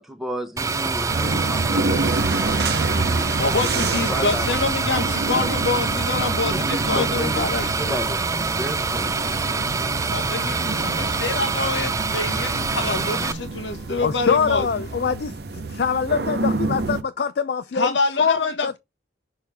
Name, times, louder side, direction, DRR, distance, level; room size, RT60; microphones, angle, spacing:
voice 1, 0.0-3.2 3.9-4.5 6.7-9.1, equal, ahead, 0.8 m, -33 dB
sound 1, 0.6-13.3, right 4 dB, 15° right, 0.4 m, -25 dB
sound 2, 1.1-17.0, right 3 dB, 60° right, 0.7 m, -29 dB
voice 2, 3.4-8.0 10.1-14.7 17.7-18.8, left 3 dB, 80° left, 1.4 m, -26 dB
sound 3, 5.0-15.0, equal, 15° left, 1.4 m, -40 dB
voice 3, 14.0-15.3 15.7-18.8, left 6 dB, 60° left, 0.4 m, -24 dB
6.4 x 4.5 x 3.4 m
head